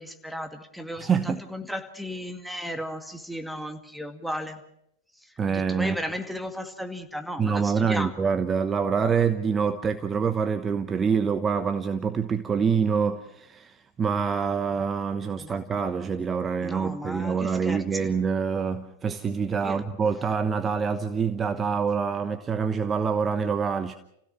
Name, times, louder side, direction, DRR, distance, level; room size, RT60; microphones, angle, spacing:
voice 1, 0.0-4.6 5.5-8.1 15.4-15.5 16.6-18.1 19.6-19.8, equal, ahead, 2.2 m, -35 dB
voice 2, 1.0-1.4 5.4-6.0 7.4-23.9, right 6 dB, 20° right, 1.0 m, -26 dB
29.5 x 16.5 x 6.3 m
figure-of-eight pair, 90°, 0 cm